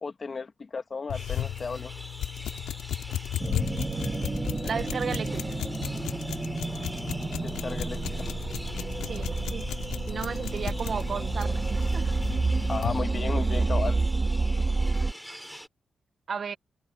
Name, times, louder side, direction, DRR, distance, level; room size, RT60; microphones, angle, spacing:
voice 1, 0.0-1.9 7.4-8.3 12.7-14.0, left 4 dB, 50° left, 1.4 m, -34 dB
sound 1, 1.1-13.0, left 11 dB, 90° left, 2.5 m, -35 dB
sound 2, 1.1-15.7, equal, ahead, 3.8 m, -45 dB
sound 3, 3.4-15.1, right 3 dB, 35° right, 1.1 m, -29 dB
voice 2, 4.6-5.6 9.0-9.6 9.9-12.1 16.3-16.6, right 6 dB, 60° right, 1.2 m, -34 dB
supercardioid pair, 50°, 0 cm